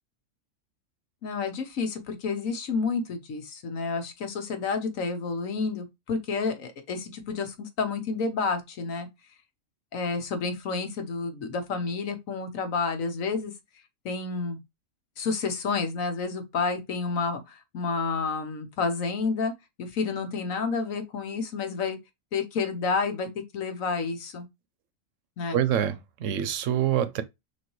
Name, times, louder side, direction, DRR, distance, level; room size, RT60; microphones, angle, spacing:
voice 1, 1.2-9.1 9.9-13.5 14.0-14.6 15.2-19.5 19.8-22.0 22.3-23.3 23.5-24.4 25.4-25.6, left 4 dB, 80° left, 1.4 m, -30 dB
voice 2, 25.5-27.2, right 10 dB, 75° right, 1.0 m, -26 dB
6.1 x 2.7 x 3.0 m
omnidirectional pair, 1.4 m